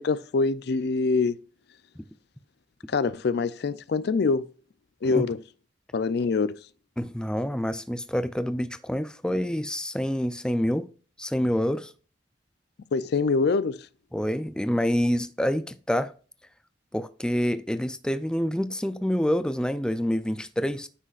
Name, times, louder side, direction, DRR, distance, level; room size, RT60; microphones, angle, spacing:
voice 1, 0.0-1.4 2.9-4.5 5.0-5.4 5.9-6.6 12.9-13.8, left 4 dB, 65° left, 0.4 m, -24 dB
voice 2, 7.0-10.9 11.2-11.9 14.1-16.1 16.9-20.9, equal, 5° left, 0.4 m, -27 dB
9.5 x 6.2 x 2.4 m
head